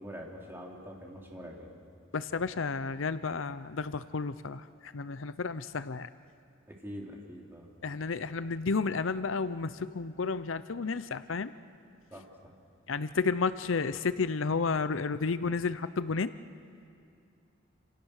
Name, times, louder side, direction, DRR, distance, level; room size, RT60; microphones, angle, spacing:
voice 1, 0.0-1.7 6.7-7.7 12.1-12.2, equal, 10° right, -1 dB, 3.8 m, -44 dB
voice 2, 2.1-6.1 7.8-11.5 12.9-16.3, left 4 dB, 75° left, 14 dB, 0.7 m, -32 dB
29.0 x 27.5 x 6.6 m, 2.5 s
head